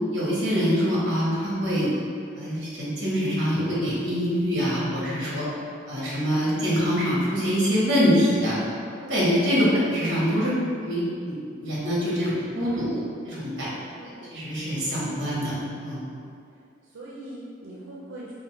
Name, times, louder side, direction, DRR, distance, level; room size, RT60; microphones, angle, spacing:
voice 1, 0.1-1.9 2.3-5.5 5.9-8.6 9.0-10.5 10.8-13.7 14.3-15.5 15.8-16.0, equal, 55° right, -7 dB, 1.2 m, -24 dB
voice 2, 13.9-14.5 14.9-15.6 16.8-18.3, right 1 dB, 90° right, -6 dB, 0.5 m, -43 dB
3.9 x 2.1 x 4.4 m, 2.4 s
head